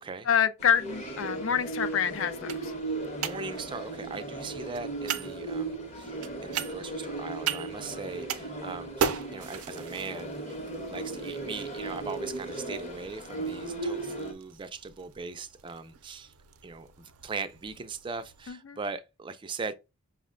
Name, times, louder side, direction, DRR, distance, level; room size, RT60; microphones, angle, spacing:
voice 1, 0.3-2.7 18.5-18.6, left 8 dB, 60° left, 0.4 m, -27 dB
sound 1, 0.6-14.3, right 2 dB, 30° left, 0.8 m, -37 dB
sound 2, 0.6-18.5, right 7 dB, 85° right, 0.5 m, -40 dB
voice 2, 3.2-16.3 16.6-19.7, right 4 dB, 20° right, 0.3 m, -40 dB
5.7 x 2.1 x 3.6 m
head